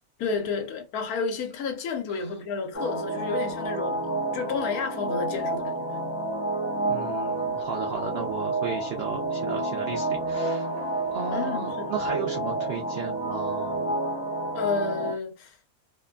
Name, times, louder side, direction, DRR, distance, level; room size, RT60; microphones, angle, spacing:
voice 1, 0.2-4.1 4.3-5.8 11.3-11.9 14.5-15.5, left 5 dB, 75° left, 1.2 m, -31 dB
sound 1, 2.7-15.1, right 2 dB, 20° left, 1.3 m, -29 dB
voice 2, 6.9-10.7 11.1-13.9, right 6 dB, 80° right, 0.5 m, -34 dB
2.8 x 2.2 x 2.3 m
omnidirectional pair, 1.6 m